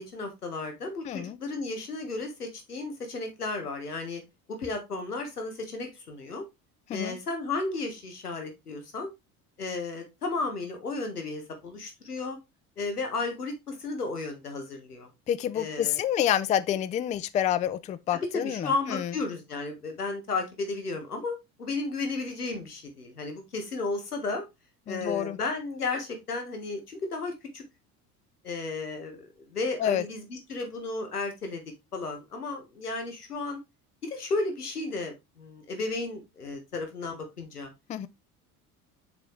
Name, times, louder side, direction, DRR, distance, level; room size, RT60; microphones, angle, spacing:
voice 1, 0.0-4.2 4.6-6.4 6.9-9.1 9.6-12.4 12.8-15.1 15.5-16.0 18.3-24.4 24.9-27.6 28.4-31.6 31.9-33.6 34.0-37.7, left 3 dB, 90° left, 1.4 m, -33 dB
voice 2, 1.0-1.4 6.9-7.2 15.3-19.1 24.9-25.4 29.8-30.0 37.9-38.1, left 10 dB, 20° left, 0.3 m, -28 dB
7.5 x 4.0 x 3.2 m
figure-of-eight pair, 65°, 45 cm